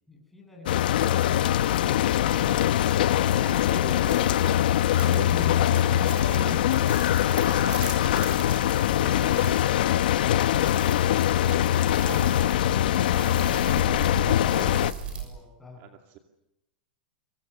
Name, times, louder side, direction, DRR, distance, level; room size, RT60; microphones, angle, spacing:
voice 1, 0.1-2.8 15.1-15.9, left 2 dB, 5° left, 1 dB, 7.7 m, -42 dB
sound 1, 0.7-14.9, left 12 dB, 75° left, 1.0 m, -23 dB
sound 2, 2.5-15.2, right 5 dB, 20° right, 6.5 m, -40 dB
voice 2, 3.4-5.5 6.3-8.5 9.0-9.7 12.0-12.3 14.5-14.7 15.8-16.2, right 10 dB, 40° right, 4 dB, 2.4 m, -43 dB
sound 3, 6.1-6.6 7.4-8.0 10.5-11.0 12.0-12.8, right 10 dB, 70° right, 2.7 m, -44 dB
27.5 x 26.0 x 7.0 m, 0.86 s
supercardioid pair, 160°, 5 cm